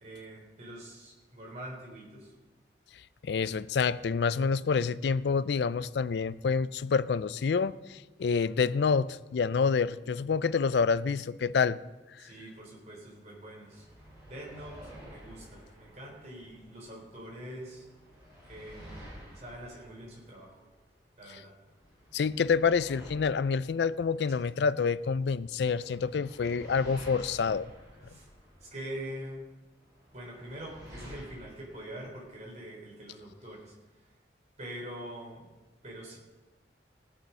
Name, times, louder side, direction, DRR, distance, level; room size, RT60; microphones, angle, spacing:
voice 1, 0.0-2.3 12.2-13.9 14.2-17.9 18.4-19.0 19.3-20.6 21.2-21.5 28.1-28.3 28.6-29.4 30.1-33.8 34.0-34.2 34.6-35.4 35.8-36.2, right 1 dB, 40° right, 4.0 m, -44 dB
voice 2, 3.2-11.8 12.2-12.3 22.1-27.7, left 5 dB, 70° left, 0.4 m, -27 dB
sound 1, 13.6-17.3 17.6-21.3 21.6-25.3 25.7-29.3 29.8-32.3, equal, 20° right, 5.1 m, -52 dB
17.0 x 7.3 x 5.5 m
head